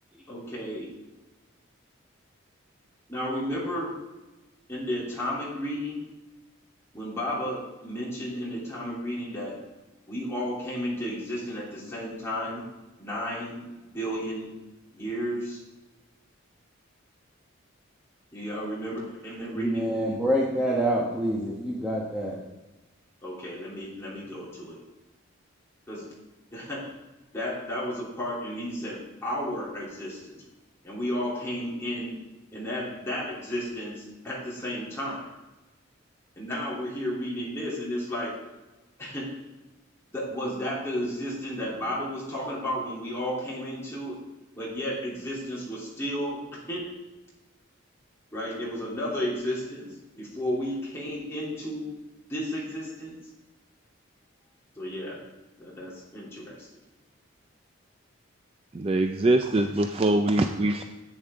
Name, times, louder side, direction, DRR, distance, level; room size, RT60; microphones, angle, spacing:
voice 1, 0.3-0.9 3.1-3.9 4.7-6.0 6.9-9.6 10.1-12.6 13.0-13.6 13.9-14.5 14.9-15.6 18.3-20.2 23.2-24.8 25.9-26.0 26.5-26.9 27.3-30.4 30.8-32.1 32.5-35.3 36.4-38.4 39.0-39.3 40.1-44.2 44.6-46.9 48.3-49.9 50.2-51.9 52.3-53.1 54.8-55.2 55.6-56.7, equal, 15° left, -7 dB, 3.2 m, -33 dB
voice 2, 19.5-22.4, right 1 dB, 5° right, -5 dB, 1.1 m, -26 dB
voice 3, 58.7-60.8, right 2 dB, 30° right, 6 dB, 0.4 m, -23 dB
10.5 x 9.1 x 3.7 m, 1.1 s
head